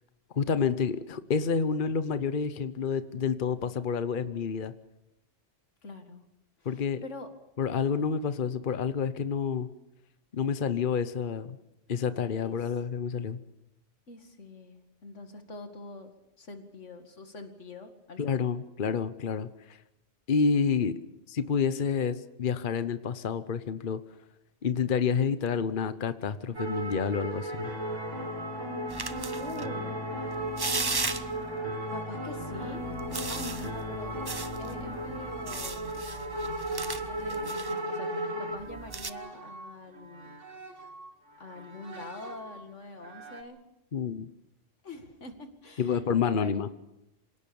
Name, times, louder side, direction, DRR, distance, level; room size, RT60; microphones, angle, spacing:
voice 1, 0.3-4.7 6.6-7.0 7.6-9.7 10.3-11.6 11.9-13.4 18.2-19.8 20.3-21.0 21.3-24.0 24.6-27.7 43.9-44.3 45.8-46.7, left 6 dB, 45° left, 12 dB, 1.0 m, -29 dB
voice 2, 5.8-6.2 6.6-7.3 12.4-12.7 14.1-18.5 29.4-30.0 31.9-32.8 33.3-34.2 34.6-36.0 37.1-38.1 38.4-40.4 41.4-43.6 44.8-46.6, left 2 dB, 90° left, 6 dB, 2.5 m, -45 dB
sound 1, 26.5-41.1 41.4-42.6 43.0-43.4, right 1 dB, 85° right, 2.2 m, -37 dB
sound 2, 27.6-35.6, left 1 dB, 50° right, 4.3 m, -39 dB
sound 3, 28.9-29.6 30.3-31.5 32.4-37.7 38.6-39.1, right 3 dB, 25° right, 0.7 m, -37 dB
27.0 x 17.5 x 7.1 m, 0.89 s
omnidirectional pair, 1.2 m